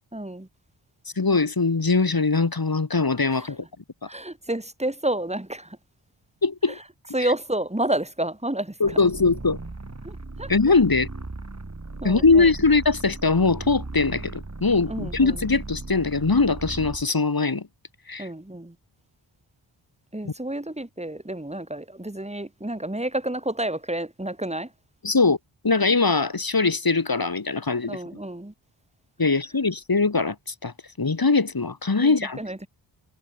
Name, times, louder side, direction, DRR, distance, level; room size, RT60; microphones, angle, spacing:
voice 1, 0.1-0.5 3.3-3.5 4.1-5.8 7.1-9.0 10.0-10.5 12.0-12.5 14.9-15.4 18.2-18.7 20.1-24.7 27.9-28.5 32.0-32.7, right 1 dB, 15° right, 5.2 m, -30 dB
voice 2, 1.2-3.6 6.4-6.8 7.2-7.3 8.8-9.6 10.5-11.1 12.0-17.7 18.1-18.3 20.2-20.3 25.0-25.4 25.6-28.0 29.2-30.7 31.0-32.4, left 4 dB, 45° left, 3.3 m, -21 dB
sound 1, 8.8-17.1, right 2 dB, 35° right, 4.8 m, -37 dB
wide cardioid pair, 70°, 49 cm